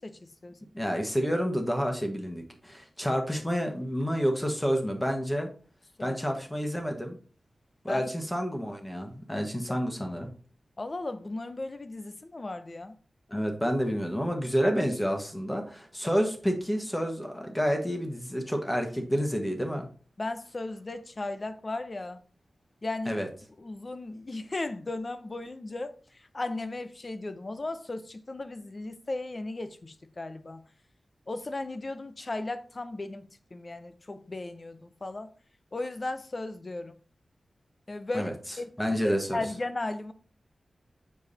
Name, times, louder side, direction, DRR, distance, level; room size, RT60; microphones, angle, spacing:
voice 1, 0.0-0.6 6.0-6.2 7.9-8.0 10.8-13.0 20.2-22.2 22.8-23.2 23.6-30.6 31.3-35.3 35.7-36.9 37.9-38.7 39.0-40.1, left 2 dB, 35° left, 0.7 m, -36 dB
voice 2, 0.7-5.5 6.0-7.2 7.8-10.3 13.3-19.9 23.0-23.3 38.1-38.3 38.8-39.4, equal, 10° left, 1.5 m, -29 dB
7.0 x 4.7 x 4.1 m
wide cardioid pair, 115°, 0 cm